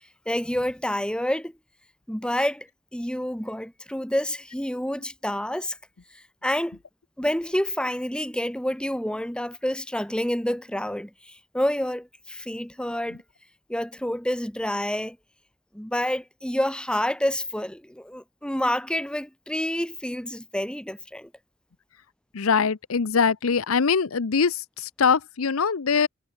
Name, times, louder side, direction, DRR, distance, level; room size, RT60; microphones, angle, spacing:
voice 1, 0.3-1.5 2.1-2.7 2.9-5.8 6.4-6.8 7.2-13.2 13.7-15.2 15.7-21.3, left 1 dB, 5° left, 1.2 m, -28 dB
voice 2, 22.3-26.1, left 5 dB, 90° left, 0.7 m, -23 dB
head